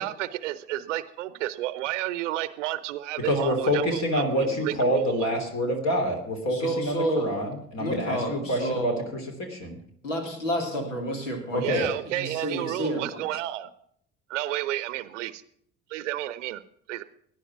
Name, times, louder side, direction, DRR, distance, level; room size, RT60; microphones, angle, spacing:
voice 1, 0.0-5.3 11.6-13.7 14.3-15.4 15.9-16.6 16.9-17.0, right 14 dB, 70° right, 15 dB, 0.8 m, -31 dB
voice 2, 3.2-9.2 9.5-9.8 11.5-11.9, equal, 45° left, 4 dB, 3.1 m, -26 dB
voice 3, 6.5-7.3 7.8-9.0 10.0-13.2, right 1 dB, 75° left, 4 dB, 3.1 m, -30 dB
18.0 x 10.5 x 6.0 m, 0.66 s
figure-of-eight pair, 55°, 38 cm